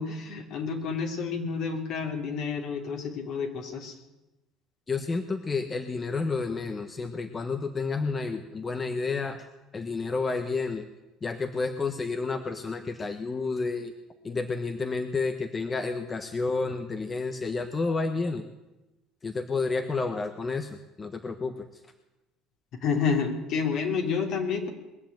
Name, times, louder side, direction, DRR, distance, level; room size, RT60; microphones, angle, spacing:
voice 1, 0.0-3.9 22.8-24.7, left 5 dB, 65° left, 3 dB, 3.0 m, -29 dB
voice 2, 4.9-9.5 9.7-10.9 11.2-13.9 14.2-18.4 19.2-21.6, left 4 dB, 25° left, 8 dB, 1.2 m, -30 dB
21.5 x 7.1 x 9.3 m, 1.0 s
supercardioid pair, 85°, 0 cm